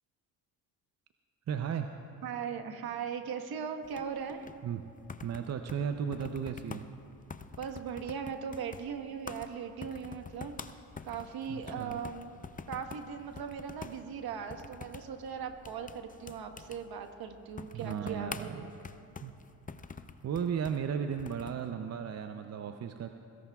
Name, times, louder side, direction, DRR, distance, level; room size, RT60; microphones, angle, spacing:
voice 1, 1.5-1.9 4.6-4.9 5.2-6.9 11.5-12.0 17.7-18.7 19.2-19.3 20.2-23.1, right 7 dB, 40° right, 7 dB, 0.7 m, -35 dB
voice 2, 2.2-4.5 7.6-10.8 11.0-12.3 12.7-18.7, right 7 dB, 60° right, 6 dB, 1.4 m, -39 dB
sound 1, 3.8-21.7, left 5 dB, 20° left, 0.6 m, -48 dB
27.5 x 17.0 x 2.4 m, 2.7 s
supercardioid pair, 70°, 41 cm